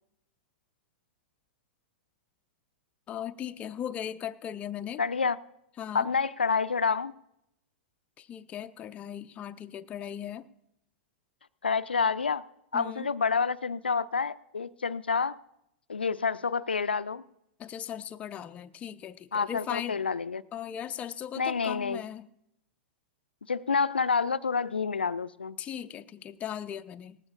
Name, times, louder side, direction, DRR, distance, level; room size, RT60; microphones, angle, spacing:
voice 1, 3.1-5.0 5.8-6.1 8.2-10.5 12.7-13.1 17.6-20.0 20.5-22.3 25.6-27.2, left 9 dB, 25° left, 9 dB, 0.5 m, -38 dB
voice 2, 5.0-5.4 5.9-7.1 11.6-12.4 12.7-15.4 15.9-17.2 19.3-20.4 21.4-22.0 23.5-25.6, left 5 dB, 80° left, 16 dB, 0.4 m, -28 dB
19.0 x 15.5 x 2.5 m, 0.80 s
figure-of-eight pair, 95°, 5 cm